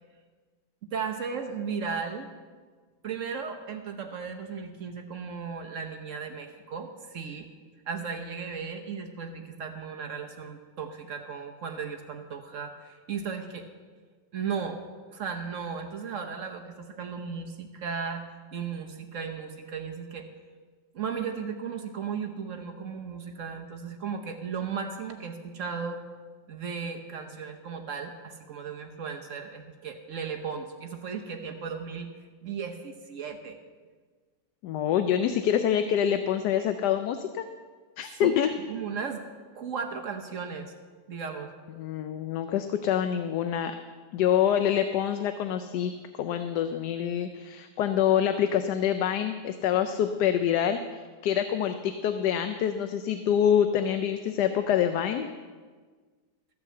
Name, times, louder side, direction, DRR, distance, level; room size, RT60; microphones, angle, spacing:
voice 1, 0.9-2.3 3.0-7.5 7.9-13.6 14.3-14.8 15.1-18.2 18.5-20.3 20.9-26.0 26.5-33.6 38.2-38.4 38.7-39.2 39.5-40.7 41.1-41.5, right 6 dB, 55° right, 4 dB, 1.1 m, -35 dB
voice 2, 34.6-37.4 38.0-38.5 41.8-43.7 44.1-55.3, left 9 dB, 80° left, 8 dB, 1.2 m, -26 dB
14.0 x 5.9 x 7.6 m, 1.5 s
omnidirectional pair, 1.8 m